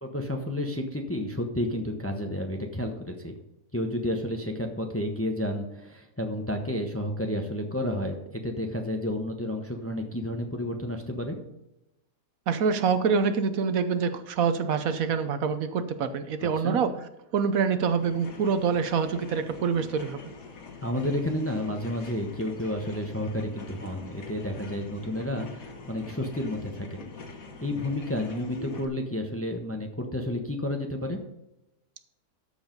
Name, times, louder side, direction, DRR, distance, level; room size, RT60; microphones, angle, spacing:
voice 1, 0.0-3.3 3.7-11.4 16.4-16.8 20.8-27.0 27.6-31.2, left 1 dB, 10° left, 3 dB, 0.9 m, -31 dB
voice 2, 12.5-16.9 17.3-20.2, right 6 dB, 70° right, 10 dB, 1.1 m, -26 dB
sound 1, 17.9-28.8, left 4 dB, 65° left, 1.7 m, -44 dB
13.5 x 4.8 x 5.3 m, 0.92 s
omnidirectional pair, 1.6 m